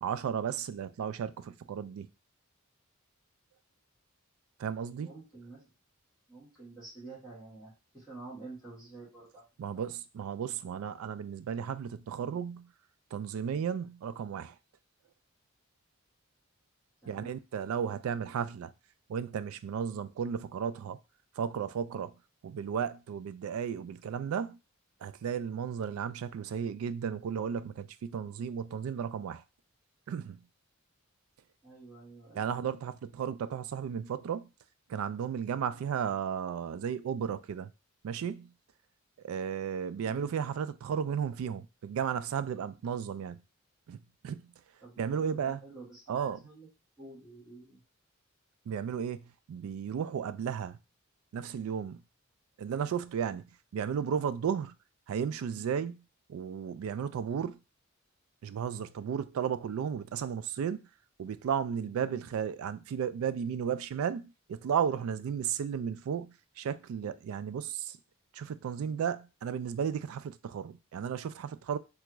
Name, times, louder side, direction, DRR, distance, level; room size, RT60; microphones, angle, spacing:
voice 1, 0.0-2.1 4.6-5.1 9.6-12.7 13.1-14.6 17.1-18.7 19.1-21.0 21.4-22.1 22.4-24.6 25.0-29.4 30.1-30.4 32.3-34.5 34.9-37.7 38.0-38.5 39.2-43.4 43.9-44.0 44.2-44.4 45.0-45.6 46.1-46.4 48.7-50.8 51.3-52.0 52.6-53.4 53.7-54.7 55.1-56.0 56.3-57.6 58.4-60.8 61.2-68.0 68.3-71.8, right 7 dB, 75° right, 0.3 m, -34 dB
voice 2, 5.0-5.6 6.3-9.4 9.7-9.9 17.0-17.4 31.6-32.4 40.0-40.3 44.8-46.7 47.0-47.8 61.8-62.3, right 3 dB, ahead, 1.5 m, -49 dB
3.4 x 2.4 x 3.0 m
head